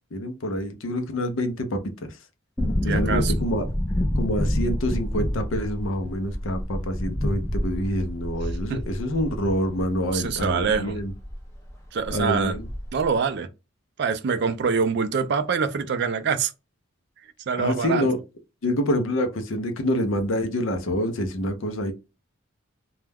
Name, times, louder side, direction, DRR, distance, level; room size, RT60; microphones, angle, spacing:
voice 1, 0.1-1.8 2.8-3.7 4.1-11.1 12.1-12.7 17.6-18.2 18.6-21.9, equal, 70° left, 0.5 m, -26 dB
sound 1, 2.6-11.4 11.7-11.8 12.0-13.1 13.3-13.4, left 1 dB, 15° left, 0.5 m, -28 dB
voice 2, 2.9-3.3 8.7-8.8 10.1-11.0 11.9-12.6 12.9-13.5 14.0-16.5 17.5-18.1, right 5 dB, 55° right, 0.3 m, -25 dB
2.3 x 2.1 x 3.3 m
head